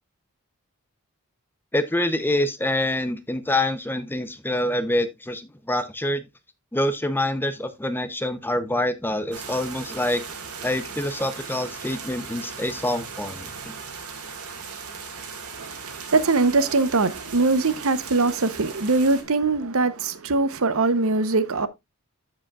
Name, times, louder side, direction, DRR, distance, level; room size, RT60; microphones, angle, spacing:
voice 1, 1.7-6.2 6.7-10.2 10.6-13.7, left 1 dB, 10° left, 0.6 m, -26 dB
sound 1, 9.3-19.2, right 5 dB, 90° right, 2.0 m, -38 dB
voice 2, 15.6-21.7, right 3 dB, 65° right, 0.8 m, -22 dB
14.5 x 5.1 x 2.4 m
head